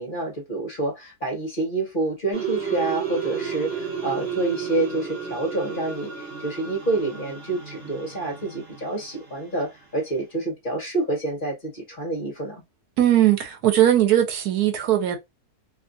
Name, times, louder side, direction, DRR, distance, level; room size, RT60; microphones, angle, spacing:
voice 1, 0.0-12.6, right 2 dB, 40° left, 1.0 m, -28 dB
sound 1, 2.3-9.5, right 6 dB, 45° right, 1.0 m, -33 dB
voice 2, 13.0-15.2, right 12 dB, 80° right, 1.2 m, -19 dB
2.8 x 2.4 x 2.6 m
omnidirectional pair, 1.7 m